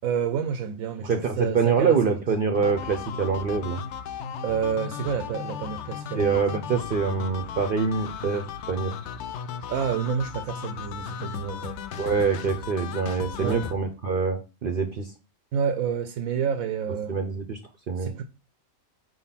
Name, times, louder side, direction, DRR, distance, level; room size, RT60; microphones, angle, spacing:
voice 1, 0.0-2.0 4.4-6.4 9.7-11.8 13.4-13.6 15.5-17.2 18.0-18.2, right 7 dB, 85° right, 1.0 m, -29 dB
voice 2, 1.0-3.8 6.2-8.9 12.0-15.1 17.1-17.6 17.9-18.1, right 5 dB, 50° right, 0.7 m, -25 dB
sound 1, 2.5-13.8, left 8 dB, 65° left, 0.8 m, -36 dB
4.6 x 4.0 x 5.7 m
omnidirectional pair, 1.4 m